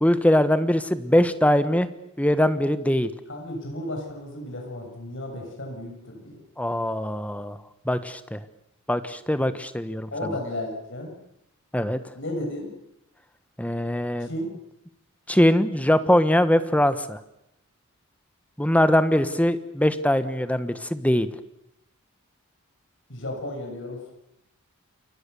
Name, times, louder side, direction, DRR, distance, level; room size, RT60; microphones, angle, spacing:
voice 1, 0.0-1.9 2.2-3.1 6.6-7.6 7.8-8.4 8.9-10.1 11.7-12.0 13.6-14.3 15.3-17.2 18.6-21.3, left 1 dB, 5° left, 12 dB, 1.2 m, -22 dB
voice 2, 3.3-6.4 10.1-11.2 12.1-12.7 14.2-14.5 23.1-24.1, left 1 dB, 60° left, 2 dB, 7.3 m, -33 dB
28.5 x 22.0 x 7.0 m, 0.82 s
head